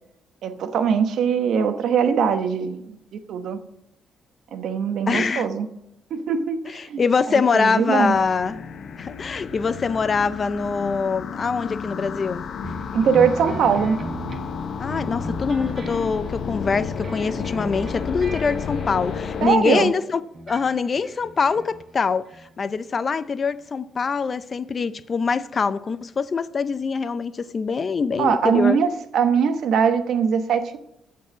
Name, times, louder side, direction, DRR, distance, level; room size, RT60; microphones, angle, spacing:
voice 1, 0.4-3.6 4.5-5.7 6.1-6.6 6.9-7.0 7.3-8.2 12.9-14.0 19.4-19.9 28.2-30.8, right 7 dB, 70° right, 1.0 m, -21 dB
voice 2, 5.1-5.5 6.7-8.6 9.0-12.4 14.8-20.2 20.5-22.3 22.6-28.8, left 5 dB, 40° left, 0.5 m, -24 dB
sound 1, 8.1-19.5, left 6 dB, 65° left, 0.9 m, -32 dB
sound 2, 12.6-19.9 20.3-22.0 22.3-22.8 23.6-23.7, right 2 dB, 45° right, 1.3 m, -38 dB
14.0 x 4.7 x 7.3 m
cardioid pair, 90°, 0 cm